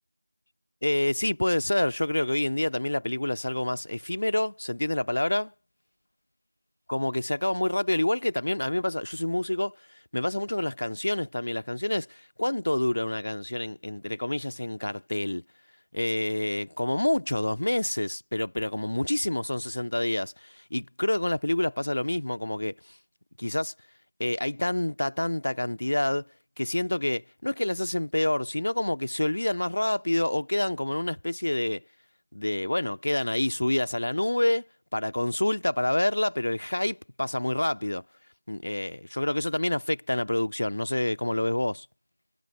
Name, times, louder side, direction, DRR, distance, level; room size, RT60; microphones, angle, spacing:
voice 1, 0.8-5.5 6.9-9.8 10.1-15.4 15.9-23.0 23.4-23.7 24.2-26.3 26.6-31.8 32.3-34.7 34.9-38.0 38.5-41.9, left 1 dB, 35° left, 1.0 m, -27 dB
figure-of-eight pair, 175°, 0 cm